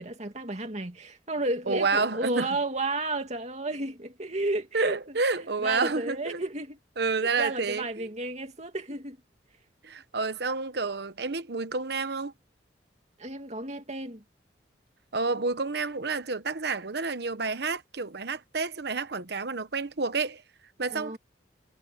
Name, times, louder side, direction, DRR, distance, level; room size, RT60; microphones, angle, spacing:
voice 1, 0.0-5.0 5.4-6.8 7.4-9.2 13.2-14.2 20.9-21.2, right 2 dB, 40° right, 2.6 m, -32 dB
voice 2, 1.7-2.5 4.7-6.4 7.0-8.1 9.8-12.3 15.1-20.4 20.8-21.2, right 4 dB, 60° right, 1.0 m, -29 dB
head